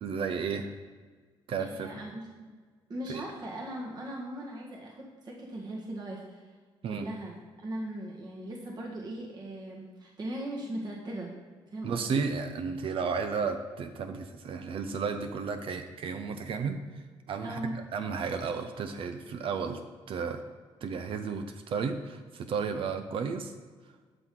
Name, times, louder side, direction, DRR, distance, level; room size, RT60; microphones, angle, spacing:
voice 1, 0.0-0.7 1.5-1.9 3.1-3.2 6.8-7.1 11.8-16.8 17.3-19.8 20.1-20.4 20.8-23.5, right 5 dB, 60° right, 7 dB, 0.7 m, -33 dB
voice 2, 1.6-2.5 2.9-6.5 6.9-11.3 11.7-12.2 17.4-17.7, right 1 dB, 45° right, -3 dB, 1.7 m, -39 dB
12.5 x 5.9 x 3.9 m, 1.5 s
cardioid pair, 90°, 10 cm